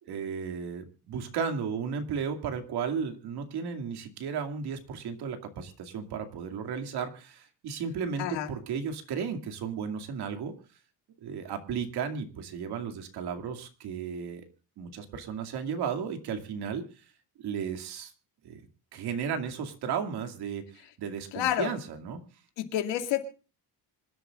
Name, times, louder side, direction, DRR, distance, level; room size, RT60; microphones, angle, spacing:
voice 1, 0.0-10.6 11.2-14.5 14.8-16.8 17.4-18.1 18.4-18.6 18.9-22.2, right 6 dB, 65° right, 2.5 m, -34 dB
voice 2, 21.3-21.7 22.6-23.2, left 12 dB, 85° left, 2.5 m, -29 dB
26.5 x 12.5 x 2.5 m
cardioid pair, 170°, 43 cm